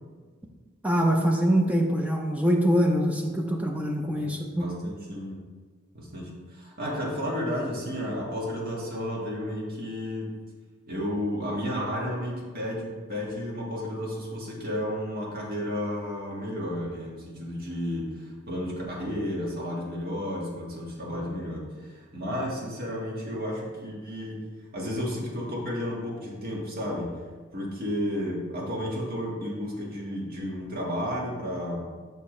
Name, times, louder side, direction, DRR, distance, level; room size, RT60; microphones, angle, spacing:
voice 1, 0.8-4.7, equal, 5° right, 1 dB, 0.5 m, -24 dB
voice 2, 4.6-5.4 5.9-10.3 10.9-24.4 24.7-27.1 27.5-31.8, equal, 50° right, -3 dB, 1.6 m, -32 dB
7.0 x 5.6 x 3.2 m, 1.5 s
head